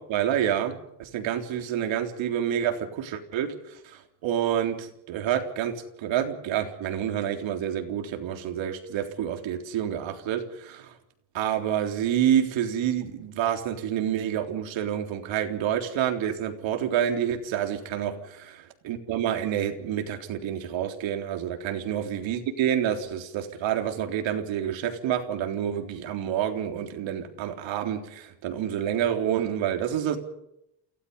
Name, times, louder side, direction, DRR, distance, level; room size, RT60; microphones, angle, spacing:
voice 1, 0.1-10.9 11.3-18.2 18.9-30.2, right 10 dB, 75° right, 5 dB, 3.8 m, -28 dB
28.5 x 17.5 x 5.6 m, 0.80 s
cardioid pair, 135°, 46 cm